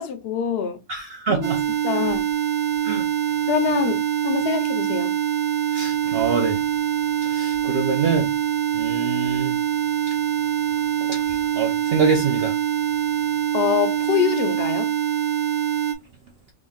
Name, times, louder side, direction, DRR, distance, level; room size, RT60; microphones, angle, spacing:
voice 1, 0.0-0.8 1.3-1.5 1.8-2.3 3.5-5.2 13.5-15.0, left 9 dB, 60° left, 0.8 m, -25 dB
voice 2, 0.9-1.6 1.9-2.0 2.8-3.1 5.7-6.6 7.2-8.3 8.7-9.6 11.1-12.6, right 5 dB, 60° right, 0.8 m, -25 dB
sound 1, 1.4-15.9, right 10 dB, 85° right, 1.1 m, -24 dB
3.7 x 3.4 x 2.3 m
omnidirectional pair, 1.3 m